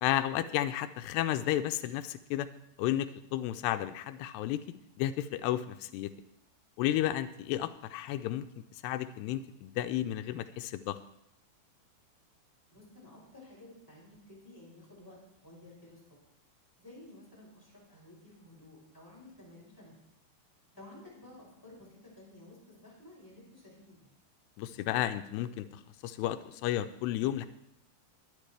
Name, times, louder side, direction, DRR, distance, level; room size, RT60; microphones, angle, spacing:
voice 1, 0.0-2.5 2.8-4.6 5.0-6.1 6.8-8.5 8.8-11.0 24.6-27.5, left 13 dB, 90° left, 11 dB, 2.7 m, -32 dB
voice 2, 12.7-16.0 16.8-20.0 20.7-24.0, left 1 dB, 5° left, -6 dB, 6.2 m, -53 dB
22.5 x 9.8 x 3.3 m, 0.80 s
omnidirectional pair, 4.7 m